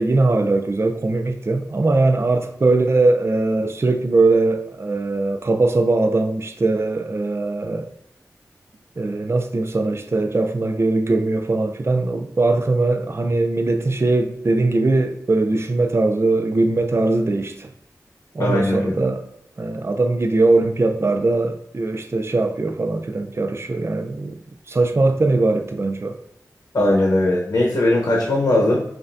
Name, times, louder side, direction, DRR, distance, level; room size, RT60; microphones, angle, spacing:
voice 1, 0.0-7.9 9.0-17.7 18.3-19.2 19.6-24.4 24.7-26.2, right 2 dB, 40° right, 0.4 m, -20 dB
voice 2, 18.4-18.9 26.7-28.8, left 1 dB, 60° left, 0.9 m, -19 dB
5.4 x 2.6 x 2.6 m
wide cardioid pair, 75°, 7 cm